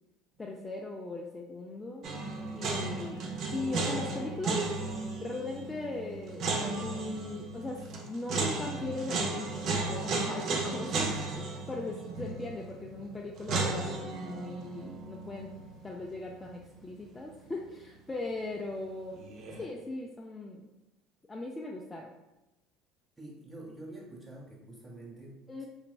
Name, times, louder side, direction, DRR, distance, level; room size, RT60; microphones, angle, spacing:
voice 1, 0.4-2.2 2.5-4.7 5.2-15.5 15.8-19.2 19.6-20.7 21.3-22.1 25.5-25.7, left 2 dB, 20° left, -1 dB, 0.3 m, -39 dB
sound 1, 2.0-17.0 17.3-17.4 19.1-19.6, right 3 dB, 55° right, 0.5 m, -35 dB
voice 2, 23.2-25.4, right 2 dB, 10° right, -4 dB, 1.0 m, -47 dB
3.2 x 2.1 x 2.3 m, 0.98 s
hypercardioid pair, 75°, 0 cm